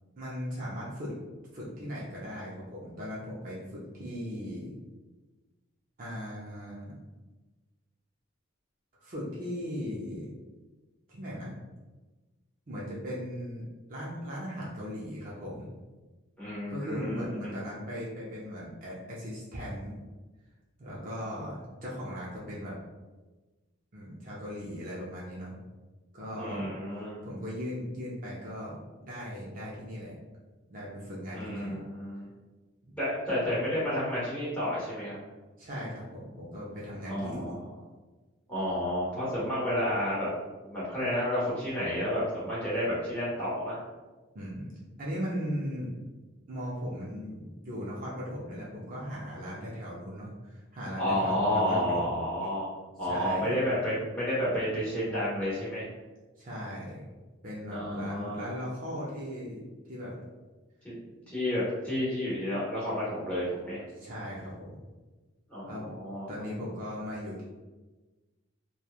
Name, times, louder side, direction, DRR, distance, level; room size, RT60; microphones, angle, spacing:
voice 1, 0.2-1.2 1.5-4.7 6.0-7.0 9.0-10.3 11.1-11.5 12.7-15.7 16.7-20.0 20.8-22.7 23.9-25.6 26.1-26.7 27.0-30.1 30.7-31.8 32.8-33.0 35.6-37.6 44.3-44.7 45.0-45.9 46.5-52.2 53.0-53.5 56.4-57.0 57.4-59.6 59.9-60.1 63.9-64.8 65.6-65.9 66.3-67.4, equal, 40° right, -6 dB, 0.5 m, -38 dB
voice 2, 16.4-17.6 26.4-27.2 31.3-32.3 33.0-35.2 37.1-37.6 38.5-40.3 40.6-43.8 51.0-52.7 53.0-55.9 57.7-58.5 60.8-61.0 61.3-63.8 65.5-66.3, equal, 5° left, -10 dB, 1.1 m, -31 dB
3.0 x 2.3 x 2.3 m, 1.2 s
head